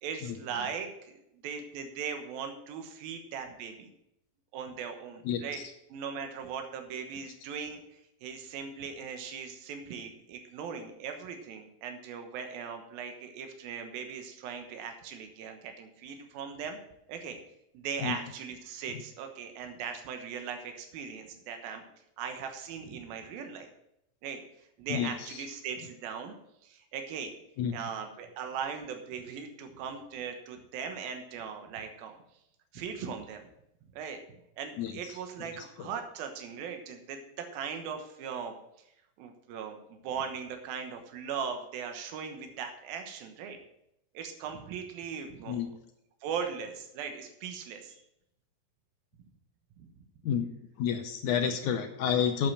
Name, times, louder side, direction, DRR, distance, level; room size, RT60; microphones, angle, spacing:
voice 1, 0.0-3.9 4.5-5.6 5.9-7.8 8.2-16.8 17.1-17.4 17.7-21.8 22.2-23.7 24.2-24.4 24.8-26.3 26.6-27.3 27.7-32.2 32.7-33.5 33.9-34.2 34.6-38.6 39.2-43.6 44.1-45.6 46.2-48.0 49.8-49.9, right 6 dB, 75° right, 5 dB, 3.0 m, -39 dB
voice 2, 5.2-5.7 18.0-18.2 24.9-25.4 27.6-27.8 34.8-35.5 35.8-35.9 45.5-45.7 50.2-50.5 50.8-52.5, left 8 dB, 75° left, 6 dB, 1.9 m, -30 dB
8.6 x 7.5 x 7.3 m, 0.79 s
omnidirectional pair, 4.3 m